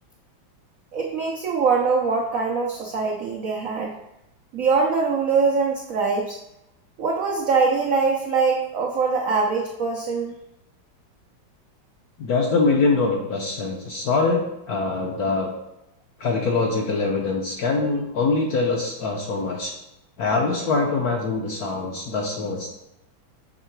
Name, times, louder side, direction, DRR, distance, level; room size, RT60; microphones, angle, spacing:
voice 1, 0.9-4.0 4.5-6.4 7.0-10.3, right 4 dB, 90° right, -1 dB, 0.7 m, -23 dB
voice 2, 12.2-15.5 16.2-19.7 20.2-22.7, left 3 dB, 70° left, 1 dB, 0.9 m, -23 dB
6.5 x 3.7 x 4.5 m, 0.88 s
omnidirectional pair, 2.3 m